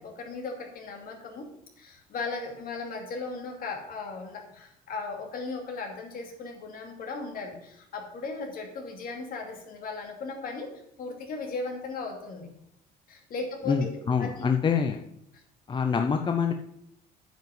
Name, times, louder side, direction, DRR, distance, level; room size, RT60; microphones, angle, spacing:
voice 1, 0.0-1.5 1.8-10.7 11.0-12.5 13.1-14.5, left 3 dB, 60° left, 2 dB, 2.7 m, -37 dB
voice 2, 13.7-15.0 15.7-16.5, left 6 dB, 30° left, 4 dB, 0.7 m, -25 dB
8.9 x 5.6 x 7.8 m, 0.74 s
cardioid pair, 110°, 17 cm